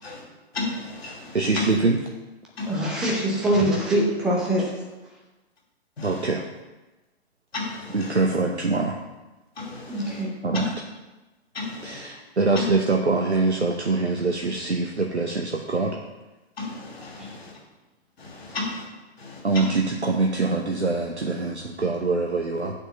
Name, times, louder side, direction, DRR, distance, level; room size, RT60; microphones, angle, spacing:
voice 1, 0.5-1.6 2.6-2.8 6.0-6.3 7.5-8.2 9.6-10.2 10.5-10.7 11.5-12.0 12.5-12.6 16.6-17.5 18.2-18.9 19.2-19.7, left 3 dB, 65° left, -2 dB, 2.6 m, -33 dB
voice 2, 1.3-2.0 6.0-6.4 7.9-9.0 10.4-10.7 11.8-16.0 19.4-22.7, right 3 dB, 85° right, 1 dB, 0.9 m, -24 dB
voice 3, 2.7-4.7 9.9-10.3 17.2-17.4, right 1 dB, ahead, -2 dB, 0.3 m, -23 dB
6.8 x 5.8 x 6.9 m, 1.1 s
figure-of-eight pair, 120°, 33 cm